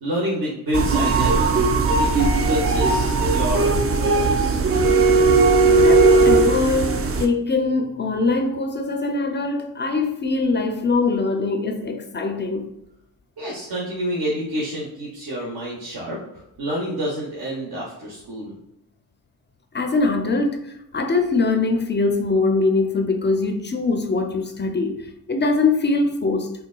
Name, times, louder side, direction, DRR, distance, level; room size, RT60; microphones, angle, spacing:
voice 1, 0.0-4.6 13.4-16.2 16.6-18.5, equal, 60° right, 1.0 m, -28 dB
sound 1, 0.7-7.3, right 3 dB, 35° right, 0.4 m, -17 dB
voice 2, 5.8-12.7 19.7-26.5, left 3 dB, 25° left, 0.4 m, -22 dB
3.8 x 2.2 x 2.2 m
supercardioid pair, 45°, 41 cm